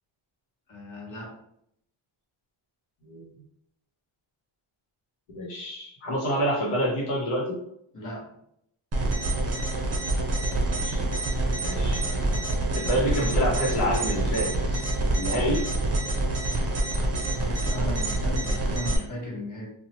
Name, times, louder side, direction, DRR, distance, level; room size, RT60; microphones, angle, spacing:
voice 1, 0.7-1.3 7.9-8.3 17.5-19.7, equal, 40° left, -4 dB, 1.1 m, -36 dB
voice 2, 5.3-7.6 10.4-11.0 11.6-12.1 12.7-14.8 15.1-15.7, equal, 80° left, -3 dB, 0.9 m, -28 dB
sound 1, 8.9-19.0, right 2 dB, 30° right, 0.6 m, -26 dB
2.8 x 2.3 x 2.8 m, 0.74 s
cardioid pair, 95°, 50 cm